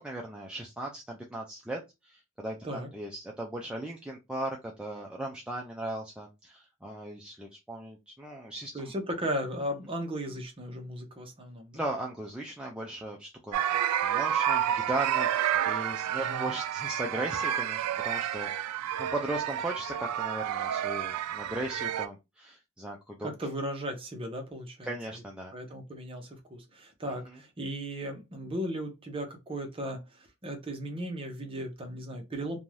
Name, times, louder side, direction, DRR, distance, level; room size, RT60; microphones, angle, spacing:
voice 1, 0.0-8.9 11.7-13.6 14.0-23.3 24.8-25.5 27.3-27.4, right 1 dB, 5° right, 0.3 m, -37 dB
voice 2, 8.7-11.8 16.2-16.5 23.2-24.9 25.5-32.6, equal, 25° right, 0.7 m, -36 dB
sound 1, 13.5-22.1, right 10 dB, 90° right, 0.3 m, -30 dB
2.6 x 2.2 x 3.1 m
head